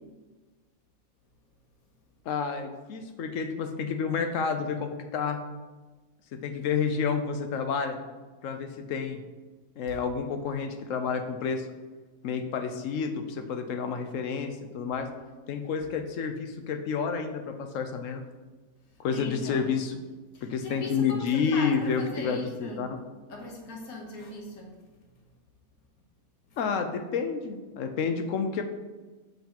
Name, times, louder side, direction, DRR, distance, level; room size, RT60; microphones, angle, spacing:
voice 1, 2.3-5.4 6.3-8.0 8.4-9.2 9.8-11.7 12.2-15.1 15.5-18.2 19.0-20.0 20.4-23.0 26.6-28.6, left 6 dB, 70° left, 6 dB, 1.0 m, -30 dB
voice 2, 19.1-19.7 20.3-22.9 23.3-24.7 26.5-26.6, left 2 dB, 85° left, 1 dB, 1.6 m, -39 dB
7.5 x 5.5 x 2.9 m, 1.3 s
omnidirectional pair, 1.5 m